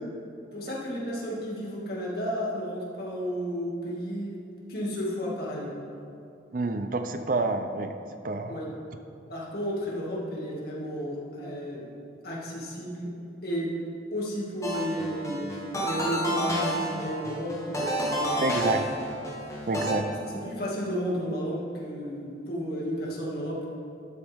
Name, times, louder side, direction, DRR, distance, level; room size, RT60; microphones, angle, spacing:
voice 1, 0.5-4.4 4.7-5.7 8.5-8.7 9.3-11.9 12.2-13.1 13.4-13.7 14.1-18.8 20.3-23.6, equal, 55° left, -5 dB, 2.2 m, -32 dB
voice 2, 6.5-7.9 8.2-8.6 18.4-18.8 19.7-20.1, right 3 dB, 45° right, 7 dB, 0.5 m, -28 dB
sound 1, 14.6-19.9, equal, 15° left, 1.2 m, -30 dB
12.5 x 7.9 x 3.6 m, 2.6 s
head